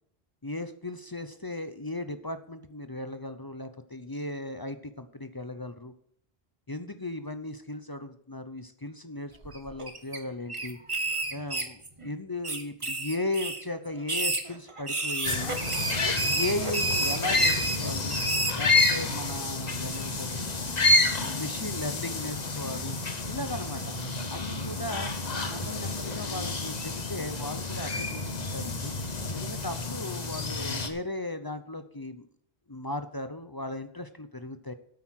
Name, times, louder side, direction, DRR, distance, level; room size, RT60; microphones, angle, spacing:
voice 1, 0.4-5.9 6.7-10.8 11.3-15.6 16.2-18.2 18.6-20.5 21.0-23.0 23.3-23.9 24.3-25.1 25.5-28.9 29.3-32.3 32.7-34.7, left 2 dB, 25° left, 10 dB, 0.6 m, -36 dB
sound 1, 9.4-10.2 10.5-12.1 12.4-13.6 14.0-19.1, right 2 dB, 30° right, 1.2 m, -30 dB
sound 2, 15.2-30.9, left 3 dB, 40° left, 1.2 m, -29 dB
9.6 x 8.6 x 6.3 m, 0.67 s
omnidirectional pair, 1.0 m